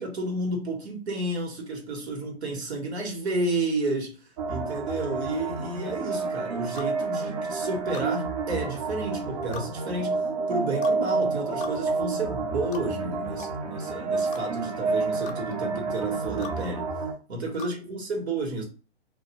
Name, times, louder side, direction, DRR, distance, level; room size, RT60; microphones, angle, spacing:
voice 1, 0.0-16.9 17.3-18.6, right 2 dB, 75° right, 1.0 m, -31 dB
sound 1, 4.4-17.1, right 4 dB, 40° right, 0.5 m, -29 dB
sound 2, 6.7-6.9 7.9-8.1 9.5-9.7 10.8-11.0 11.6-11.8 12.7-12.9 13.4-13.6 14.3-14.4 15.2-15.4 16.4-16.6 17.6-17.7, left 7 dB, 55° left, 0.6 m, -40 dB
2.2 x 2.1 x 2.7 m
hypercardioid pair, 140°, 32 cm